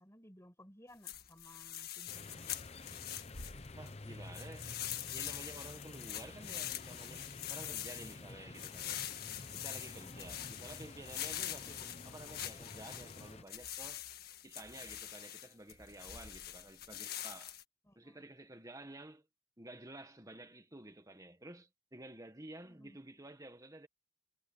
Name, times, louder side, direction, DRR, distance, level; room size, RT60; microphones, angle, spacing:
voice 1, 0.0-2.6 9.9-10.4 17.8-18.2 22.6-23.0, left 1 dB, 15° left, 7.9 m, -59 dB
sound 1, 1.0-3.9 4.3-17.6, left 11 dB, 50° left, 1.7 m, -44 dB
sound 2, 2.1-13.4, left 2 dB, 30° left, 0.9 m, -50 dB
voice 2, 3.8-4.7 5.1-9.0 9.5-14.0 14.4-17.6 17.9-19.3 19.6-23.9, right 1 dB, 15° right, 1.8 m, -52 dB
head